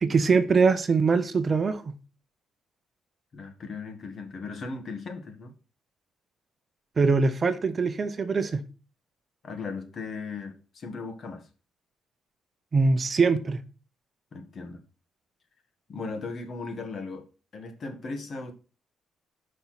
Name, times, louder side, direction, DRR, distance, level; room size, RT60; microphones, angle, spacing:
voice 1, 0.0-1.9 7.0-8.6 12.7-13.6, right 4 dB, 35° right, 0.8 m, -23 dB
voice 2, 3.3-5.5 9.4-11.4 14.3-14.8 15.9-17.2 17.5-18.5, left 4 dB, 50° left, 1.6 m, -37 dB
5.5 x 4.4 x 5.8 m
cardioid pair, 90°, 0 cm